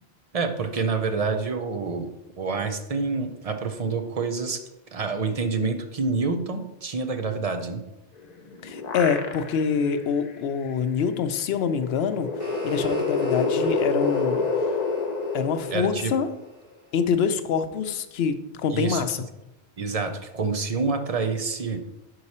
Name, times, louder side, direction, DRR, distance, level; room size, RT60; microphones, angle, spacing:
voice 1, 0.3-2.1 2.4-4.6 4.9-7.8 15.7-16.1 18.7-19.0 19.8-21.8, right 4 dB, 40° right, 6 dB, 0.6 m, -27 dB
sound 1, 8.2-9.8 10.3-10.4 11.7-16.4, left 3 dB, 45° left, 0.8 m, -27 dB
voice 2, 8.6-12.3 12.6-14.5 15.3-16.3 16.9-19.3, left 6 dB, 75° left, 9 dB, 0.8 m, -25 dB
sound 2, 12.0-17.0, left 1 dB, 60° right, 2.0 m, -41 dB
6.0 x 4.8 x 4.2 m, 0.92 s
omnidirectional pair, 1.1 m